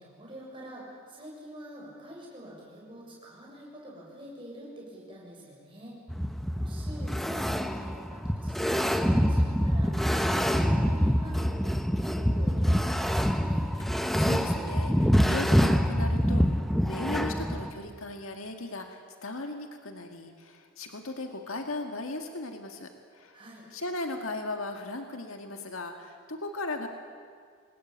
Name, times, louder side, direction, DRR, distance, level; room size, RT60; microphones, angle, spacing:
voice 1, 0.0-6.0 6.6-13.7 23.3-23.6, equal, 25° right, -3 dB, 7.3 m, -46 dB
sound 1, 6.1-17.7, equal, ahead, 1.1 m, -26 dB
voice 2, 13.8-23.4 23.7-26.9, left 2 dB, 90° left, 4 dB, 2.0 m, -37 dB
26.0 x 20.0 x 8.8 m, 2.1 s
head